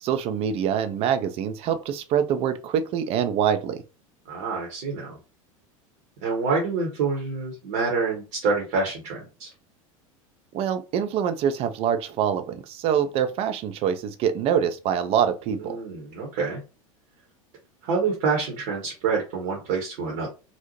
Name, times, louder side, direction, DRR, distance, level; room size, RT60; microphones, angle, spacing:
voice 1, 0.0-3.8 10.5-15.8, right 8 dB, 35° right, 0.4 m, -25 dB
voice 2, 4.3-5.2 6.2-9.5 15.5-16.6 17.8-20.3, right 4 dB, 50° right, 0.8 m, -27 dB
2.6 x 2.0 x 2.9 m
figure-of-eight pair, 80°, 18 cm